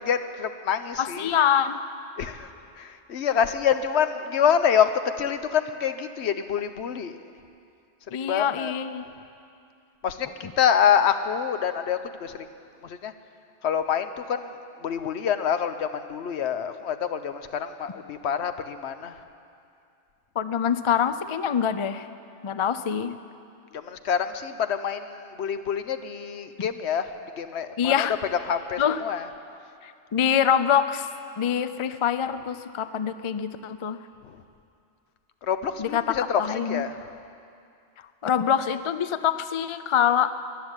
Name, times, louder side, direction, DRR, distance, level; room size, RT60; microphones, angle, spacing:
voice 1, 0.0-1.3 2.2-2.5 2.8-4.9 5.2-7.2 8.2-8.7 10.0-12.5 12.8-13.1 13.6-14.5 14.8-19.2 23.7-27.1 27.4-28.1 28.3-29.3 34.2-34.4 35.4-36.4 36.7-37.1, left 8 dB, 75° left, 10 dB, 1.0 m, -26 dB
voice 2, 1.0-1.8 8.1-9.1 10.4-10.5 20.4-22.1 22.4-23.2 27.8-28.1 28.8-29.0 29.8-31.1 31.4-34.0 35.8-36.8 38.2-40.3, left 8 dB, 45° left, 11 dB, 0.4 m, -25 dB
14.0 x 10.5 x 9.7 m, 2.4 s
omnidirectional pair, 1.2 m